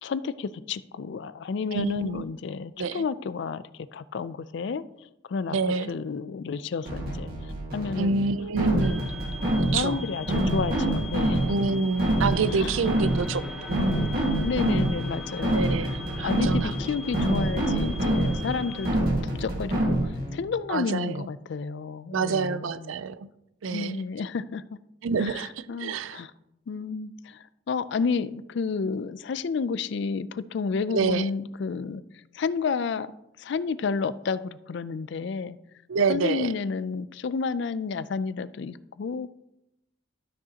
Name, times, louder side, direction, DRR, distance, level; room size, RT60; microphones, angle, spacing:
voice 1, 0.0-3.6 3.9-4.8 5.3-5.6 5.9-7.3 7.7-8.3 8.7-9.1 9.6-11.5 12.5-12.8 13.8-14.1 14.4-15.6 16.2-19.1 19.4-22.9 23.7-24.6 25.2-26.3 26.7-32.0 32.3-33.1 33.4-35.6 36.1-39.3, left 5 dB, 60° left, 16 dB, 0.4 m, -31 dB
voice 2, 1.7-2.3 2.8-3.0 5.5-5.9 8.0-9.0 9.6-10.0 11.5-13.9 15.5-16.8 20.7-21.3 22.1-23.3 23.6-24.0 25.0-26.2 30.9-31.3 35.9-36.5, right 4 dB, 80° right, 14 dB, 0.4 m, -28 dB
sound 1, 6.8-20.3, right 1 dB, 50° right, 1.8 m, -26 dB
sound 2, 8.8-18.9, left 1 dB, ahead, 1.3 m, -41 dB
12.5 x 6.3 x 2.9 m, 0.86 s
head